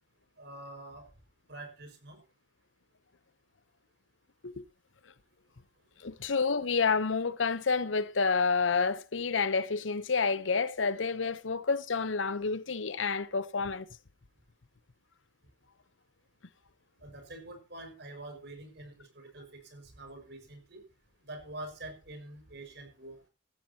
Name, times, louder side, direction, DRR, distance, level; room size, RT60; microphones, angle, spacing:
voice 1, 0.4-1.0 1.5-2.2 17.0-20.8 21.2-23.2, right 2 dB, 60° right, 5.6 m, -46 dB
voice 2, 6.0-13.9, left 4 dB, 90° left, 0.9 m, -29 dB
15.0 x 15.0 x 2.9 m
head